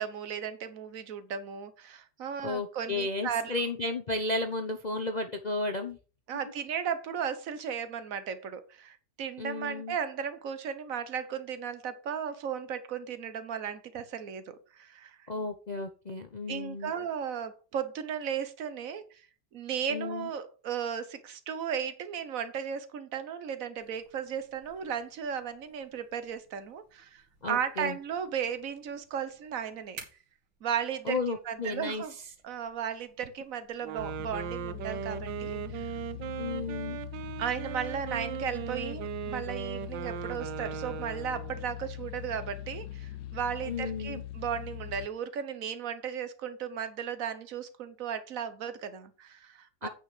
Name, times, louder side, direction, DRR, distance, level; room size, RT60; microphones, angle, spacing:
voice 1, 0.0-3.5 6.3-15.2 16.5-19.3 19.5-30.0 30.6-32.1 32.4-36.0 37.4-49.9, right 8 dB, 50° right, 1.3 m, -35 dB
voice 2, 2.4-6.0 9.4-9.9 15.3-16.9 19.9-20.3 27.4-28.0 31.1-32.0 36.4-37.0 43.7-44.2 49.8-49.9, left 2 dB, 55° left, 0.5 m, -33 dB
sound 1, 23.8-35.6, right 4 dB, 65° right, 3.1 m, -57 dB
Wind instrument woodwind instrument, 33.8-41.7, right 12 dB, 85° right, 1.4 m, -38 dB
sound 2, 34.0-45.1, left 11 dB, 85° left, 1.5 m, -41 dB
9.1 x 5.9 x 5.0 m
omnidirectional pair, 2.0 m